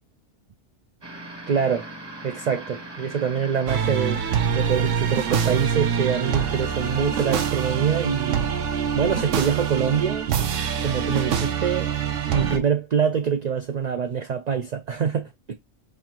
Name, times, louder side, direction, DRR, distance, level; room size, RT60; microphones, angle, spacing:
sound 1, 1.0-10.1, right 1 dB, 25° right, 1.0 m, -41 dB
voice 1, 1.5-1.9 2.2-4.2 4.5-8.4 9.0-10.3 10.8-11.9 12.3-15.5, right 7 dB, 65° right, 0.4 m, -25 dB
sound 2, 3.7-12.6, right 7 dB, 80° right, 1.0 m, -25 dB
5.4 x 2.6 x 2.9 m
omnidirectional pair, 1.3 m